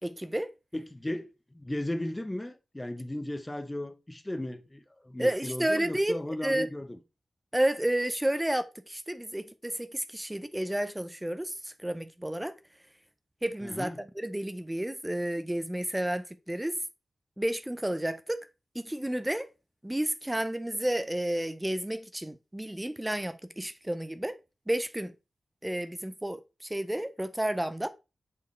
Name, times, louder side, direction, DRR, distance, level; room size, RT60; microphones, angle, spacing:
voice 1, 0.0-0.5 5.2-6.7 7.5-12.6 13.4-13.9 14.2-16.8 17.4-18.4 18.7-19.5 19.8-24.4 24.7-25.1 25.6-27.9, right 1 dB, 10° right, 0.6 m, -31 dB
voice 2, 0.7-7.0 13.6-14.0, left 1 dB, 15° left, 0.8 m, -36 dB
8.3 x 4.8 x 3.2 m
cardioid pair, 75°, 0 cm